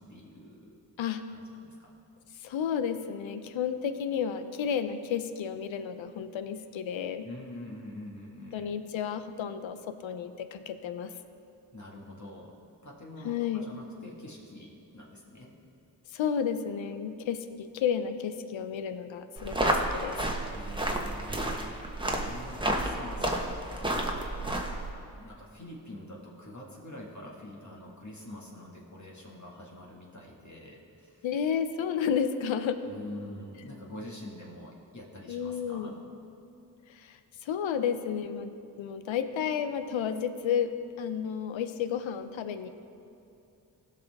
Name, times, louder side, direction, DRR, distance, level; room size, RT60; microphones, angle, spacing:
voice 1, 0.0-0.8 1.3-1.9 7.2-8.7 11.7-12.6 12.8-15.5 20.5-24.5 25.2-31.3 32.9-36.0, left 1 dB, 40° left, -3 dB, 2.0 m, -45 dB
voice 2, 2.3-7.3 8.5-11.1 13.2-13.7 16.1-20.4 31.2-32.8 35.3-36.0 36.9-42.7, left 7 dB, 85° left, 10 dB, 0.7 m, -32 dB
sound 1, 19.4-24.9, right 1 dB, 10° right, 1.3 m, -31 dB
16.0 x 5.7 x 3.6 m, 2.8 s
cardioid pair, 50°, 46 cm